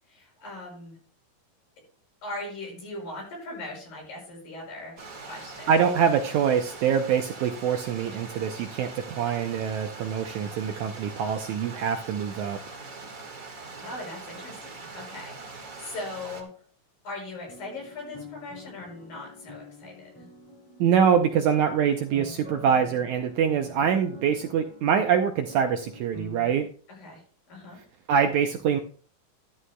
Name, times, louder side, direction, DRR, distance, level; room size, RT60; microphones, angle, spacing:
voice 1, 0.1-1.0 2.2-6.0 13.8-16.5 17.0-20.3 26.9-27.2 27.5-27.8, left 2 dB, 75° left, -1 dB, 7.9 m, -40 dB
Stream, 5.0-16.4, right 3 dB, 40° right, 1.3 m, -42 dB
voice 2, 5.7-12.6 20.8-26.7 28.1-28.8, right 7 dB, 80° right, 5 dB, 1.7 m, -24 dB
sound 1, 17.3-26.5, left 3 dB, 10° left, 1.1 m, -46 dB
13.0 x 12.5 x 2.2 m, 0.43 s
omnidirectional pair, 4.1 m